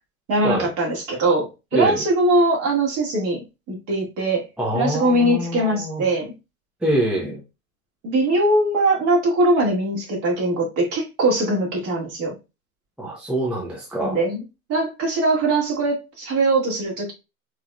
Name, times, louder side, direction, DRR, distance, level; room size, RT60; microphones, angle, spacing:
voice 1, 0.3-4.5 4.7-6.3 8.0-12.3 14.0-14.4 14.7-17.1, right 2 dB, 40° right, 2.2 m, -21 dB
voice 2, 1.7-2.0 4.6-6.1 6.8-7.4 13.0-14.2, right 1 dB, 5° right, 0.5 m, -25 dB
4.7 x 3.0 x 2.4 m
supercardioid pair, 135°, 43 cm